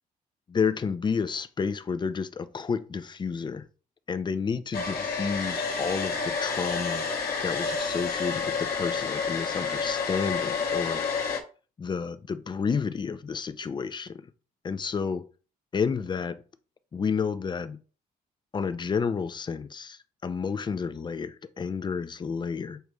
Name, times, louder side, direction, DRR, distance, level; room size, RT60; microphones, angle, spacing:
voice 1, 0.5-3.6 4.1-7.1 7.4-11.0 11.8-14.3 14.6-15.2 15.7-16.4 16.9-17.8 18.5-22.8, left 5 dB, 30° left, 0.4 m, -30 dB
Domestic sounds home sounds, 4.7-11.4, left 5 dB, 70° left, 0.9 m, -29 dB
6.5 x 3.0 x 2.3 m
cardioid pair, 105°, 16 cm